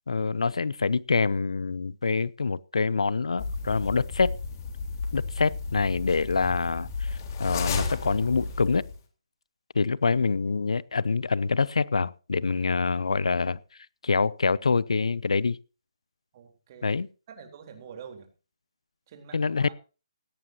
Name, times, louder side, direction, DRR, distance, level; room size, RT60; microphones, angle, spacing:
voice 1, 0.1-4.3 5.1-8.8 9.7-13.6 14.0-15.6 16.8-17.1 19.3-19.7, left 4 dB, 80° left, 0.7 m, -26 dB
sound 1, 3.4-9.0, left 4 dB, 35° left, 4.0 m, -33 dB
voice 2, 16.3-17.0 17.3-18.3 19.1-19.7, right 6 dB, 35° right, 3.9 m, -46 dB
17.0 x 17.0 x 2.9 m
hypercardioid pair, 150°, 3 cm